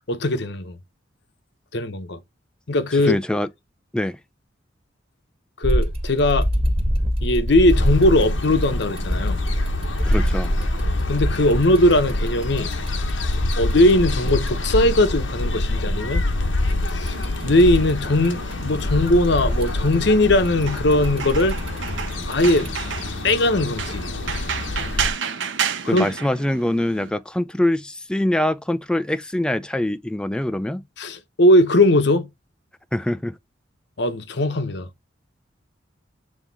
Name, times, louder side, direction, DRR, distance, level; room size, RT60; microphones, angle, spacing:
voice 1, 0.1-0.8 1.7-2.2 2.7-3.2 5.6-6.5 7.2-9.4 11.1-12.7 13.6-16.2 16.9-17.2 17.4-21.6 22.3-22.7 23.2-24.1 25.8-26.1 31.0-32.3 34.0-34.9, left 1 dB, 65° left, 0.9 m, -19 dB
voice 2, 2.9-3.5 3.9-4.2 10.1-10.5 25.9-30.8 32.9-33.4, left 1 dB, 5° left, 0.3 m, -24 dB
sound 1, 5.6-14.5 16.7-18.5 18.8-22.7, equal, 30° right, 1.5 m, -25 dB
sound 2, 7.7-25.1, left 2 dB, 85° left, 1.1 m, -26 dB
sound 3, 17.0-27.1, right 7 dB, 80° right, 0.9 m, -32 dB
7.4 x 3.4 x 4.0 m
head